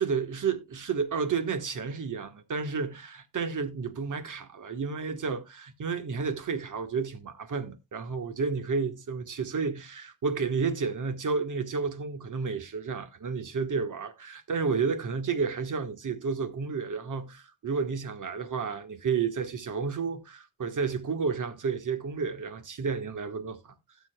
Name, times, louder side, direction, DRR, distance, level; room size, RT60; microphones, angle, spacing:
voice 1, 0.0-23.7, right 5 dB, 60° right, 1.3 m, -31 dB
17.0 x 7.0 x 2.2 m
wide cardioid pair, 130°, 36 cm